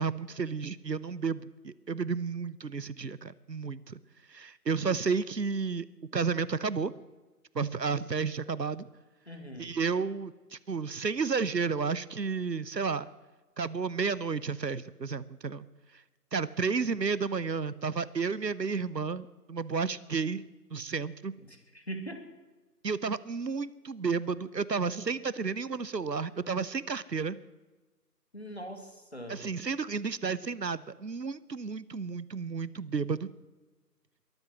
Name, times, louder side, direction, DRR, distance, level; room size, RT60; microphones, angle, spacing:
voice 1, 0.0-4.0 4.3-5.9 6.1-6.9 7.5-8.9 9.6-13.1 13.6-15.6 16.3-20.4 20.7-21.3 22.8-27.4 29.3-33.3, right 5 dB, 85° right, 18 dB, 1.0 m, -32 dB
voice 2, 9.3-9.7 21.4-22.3 28.3-29.5, right 1 dB, 40° left, 5 dB, 2.3 m, -42 dB
22.5 x 8.1 x 7.3 m, 1.2 s
figure-of-eight pair, 180°, 48 cm